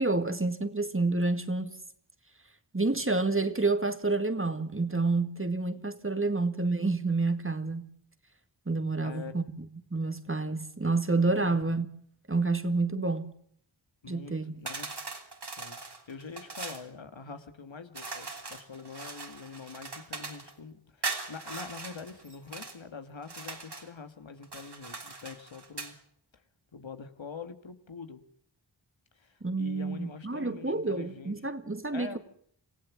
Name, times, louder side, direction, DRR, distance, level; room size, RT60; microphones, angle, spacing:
voice 1, 0.0-1.7 2.7-7.9 8.7-11.9 12.3-13.3 14.1-14.5 29.4-32.2, right 3 dB, 30° right, 2.0 m, -29 dB
voice 2, 9.0-9.3 11.5-11.8 14.0-14.3 14.6-15.0 15.6-15.8 16.1-26.0 26.7-28.2 29.1-31.4 31.9-32.2, left 5 dB, 85° left, 1.8 m, -44 dB
sound 1, 14.7-16.9 17.9-20.5 21.0-22.8 23.2-23.9 24.4-26.0, right 4 dB, 60° right, 3.2 m, -40 dB
27.0 x 16.0 x 7.3 m
wide cardioid pair, 50°, 45 cm